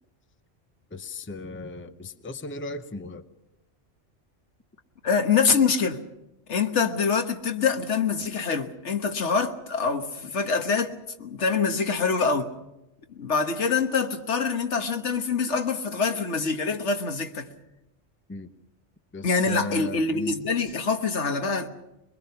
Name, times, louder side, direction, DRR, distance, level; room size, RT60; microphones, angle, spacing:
voice 1, 0.9-3.3 18.3-18.5 19.1-20.4, left 2 dB, 10° left, 0.7 m, -36 dB
voice 2, 5.0-6.0 6.5-10.9 11.2-12.5 13.1-17.5 19.2-21.7, left 5 dB, 80° left, 1.6 m, -25 dB
23.0 x 22.5 x 5.8 m
omnidirectional pair, 1.2 m